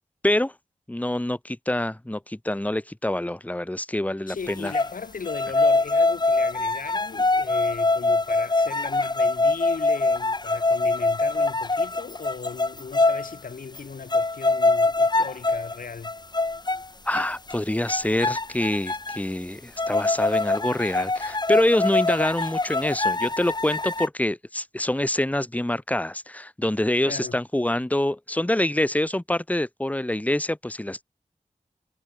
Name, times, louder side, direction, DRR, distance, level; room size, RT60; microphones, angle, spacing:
voice 1, 0.9-4.7 17.0-31.0, left 1 dB, 10° left, 1.1 m, -26 dB
voice 2, 4.3-16.1 27.0-27.4, left 5 dB, 80° left, 0.9 m, -37 dB
sound 1, 4.5-4.9 5.3-13.4 13.7-13.8 14.1-15.7 16.0-16.8 17.1-17.6 17.9-19.2 19.8-24.1, left 3 dB, 30° left, 0.8 m, -23 dB
wide cardioid pair, 50°, 14 cm